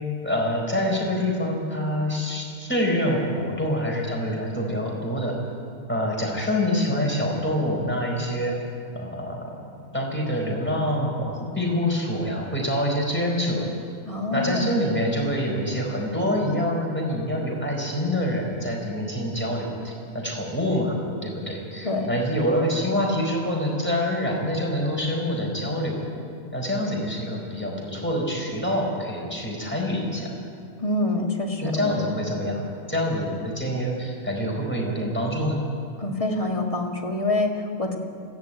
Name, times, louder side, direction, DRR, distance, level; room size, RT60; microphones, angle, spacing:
voice 1, 0.2-5.4 5.9-8.5 8.9-9.6 9.9-13.7 14.3-21.0 21.2-26.0 26.5-30.3 31.6-32.6 32.9-35.6, left 1 dB, 5° left, -1 dB, 4.4 m, -26 dB
voice 2, 14.1-14.8 21.8-22.2 30.8-31.9 36.0-38.0, left 2 dB, 25° left, 1 dB, 2.1 m, -26 dB
20.0 x 15.5 x 9.0 m, 2.3 s
omnidirectional pair, 1.5 m